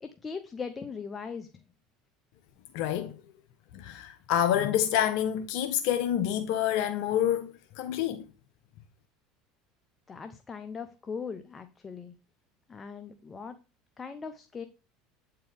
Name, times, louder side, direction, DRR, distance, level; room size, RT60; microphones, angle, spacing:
voice 1, 0.0-1.5 10.1-12.1 12.7-13.6 14.0-14.7, left 5 dB, 25° left, 0.7 m, -39 dB
voice 2, 2.7-3.1 3.7-8.2, left 10 dB, 65° left, 0.7 m, -27 dB
8.8 x 4.5 x 3.5 m
hypercardioid pair, 80°, 0 cm